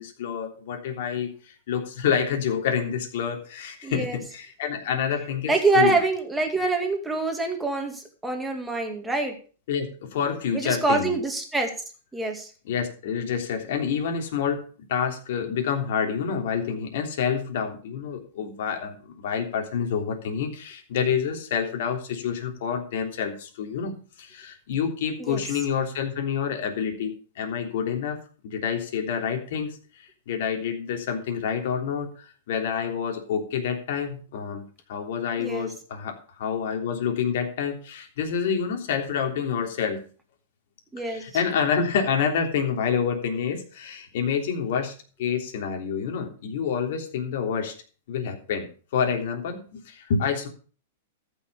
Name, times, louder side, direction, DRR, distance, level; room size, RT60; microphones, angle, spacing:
voice 1, 0.0-6.0 9.7-11.2 12.7-14.6 14.9-28.2 28.4-34.6 34.9-40.0 41.0-44.9 45.2-47.7 48.1-48.7 48.9-50.5, left 7 dB, 60° left, 3 dB, 3.3 m, -28 dB
voice 2, 3.8-4.2 5.5-9.3 10.5-11.7 12.1-12.5 25.2-25.4 35.4-35.7 40.9-41.2, right 3 dB, 5° right, 3 dB, 2.3 m, -25 dB
14.0 x 6.3 x 6.6 m, 0.40 s
supercardioid pair, 155°, 0 cm